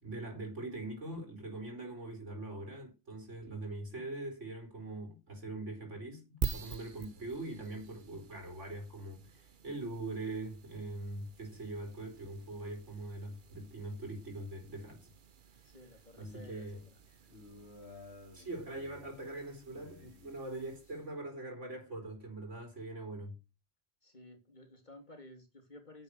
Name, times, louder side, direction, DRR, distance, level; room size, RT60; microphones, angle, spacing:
voice 1, 0.0-15.1 15.6-15.7 16.2-16.8 18.3-23.4, right 2 dB, 90° right, 4.5 m, -42 dB
sound 1, 6.4-21.1, right 6 dB, 50° right, 1.0 m, -47 dB
voice 2, 15.6-16.6 24.0-26.0, left 2 dB, 40° left, 2.9 m, -54 dB
sound 2, 16.2-21.1, left 2 dB, 65° left, 2.4 m, -55 dB
11.0 x 7.9 x 6.4 m
omnidirectional pair, 1.2 m